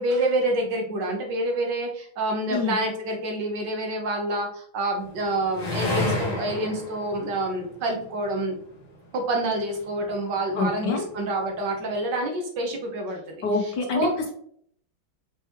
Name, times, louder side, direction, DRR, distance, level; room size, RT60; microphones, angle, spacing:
voice 1, 0.0-8.5 9.1-13.2 13.6-14.1, right 1 dB, 65° right, 2 dB, 1.5 m, -27 dB
sound 1, 5.0-8.6 9.4-10.2, left 1 dB, 85° left, 0.3 m, -31 dB
voice 2, 10.6-11.0 13.4-14.3, left 3 dB, 65° left, 2 dB, 1.2 m, -26 dB
5.4 x 3.1 x 2.9 m, 0.63 s
omnidirectional pair, 2.3 m